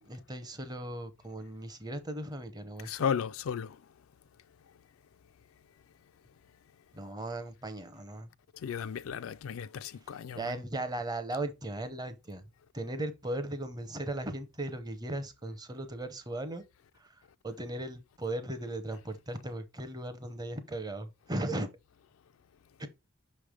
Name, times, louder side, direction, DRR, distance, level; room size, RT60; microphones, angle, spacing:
voice 1, 0.0-3.1 6.9-8.3 10.3-12.4 12.7-16.6 17.0-21.7 22.8-22.9, right 1 dB, 20° right, 0.7 m, -37 dB
voice 2, 2.8-3.8 8.6-10.5, left 7 dB, 90° left, 0.4 m, -34 dB
5.9 x 3.3 x 5.0 m
head